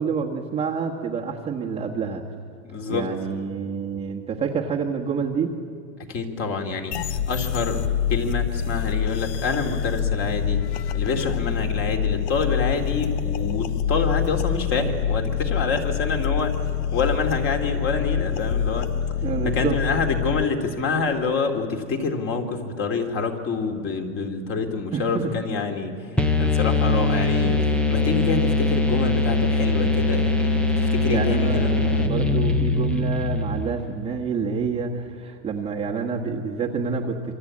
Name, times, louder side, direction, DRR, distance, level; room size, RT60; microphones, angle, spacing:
voice 1, 0.0-2.2 2.9-5.5 19.2-19.8 24.9-25.4 31.1-37.3, right 5 dB, 15° right, -1 dB, 1.3 m, -28 dB
voice 2, 2.6-3.1 6.1-6.9 7.3-7.8 8.1-10.6 10.9-16.5 16.9-18.9 19.4-25.9 26.4-31.7, left 4 dB, 30° left, 4 dB, 2.7 m, -27 dB
sound 1, 6.9-20.4, left 8 dB, 45° left, 0.9 m, -26 dB
sound 2, 26.2-33.9, left 2 dB, ahead, 0.6 m, -22 dB
27.5 x 25.0 x 8.6 m, 2.2 s
supercardioid pair, 155°, 46 cm